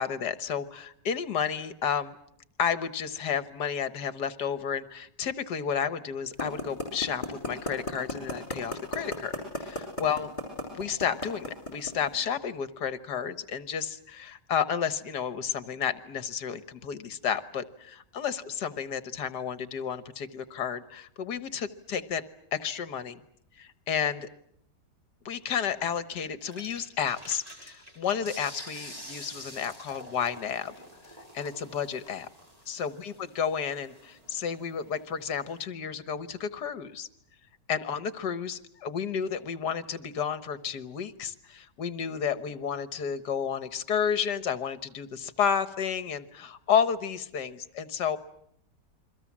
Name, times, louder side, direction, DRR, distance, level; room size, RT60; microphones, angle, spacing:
voice 1, 0.0-2.2 2.6-9.3 9.6-10.3 10.7-22.2 22.5-23.2 23.6-24.3 25.3-30.7 31.3-32.3 32.7-37.1 37.7-48.2, left 7 dB, 70° left, 12 dB, 1.8 m, -31 dB
sound 1, 6.4-12.1, left 1 dB, 25° left, 7.3 m, -32 dB
sound 2, 26.4-35.7, equal, 20° right, 4.2 m, -48 dB
29.5 x 23.0 x 7.4 m, 0.72 s
omnidirectional pair, 1.9 m